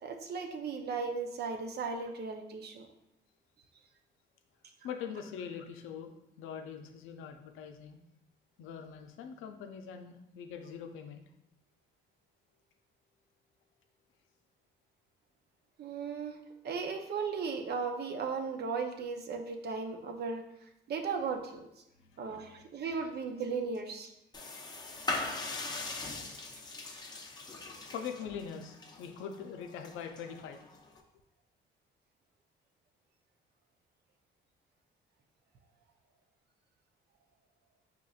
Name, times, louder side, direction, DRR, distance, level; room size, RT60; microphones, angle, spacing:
voice 1, 0.0-2.9 15.8-16.4 16.6-20.4 20.9-21.7 22.2-24.1 27.0-27.1, right 5 dB, 55° right, 5 dB, 0.6 m, -36 dB
voice 2, 4.8-6.1 6.4-8.0 8.6-11.2 22.0-22.7 27.9-30.6, left 7 dB, 90° left, 5 dB, 0.5 m, -43 dB
sound 1, 24.3-31.0, left 3 dB, 20° left, 0.6 m, -41 dB
5.0 x 3.0 x 2.4 m, 0.84 s
cardioid pair, 90°, 20 cm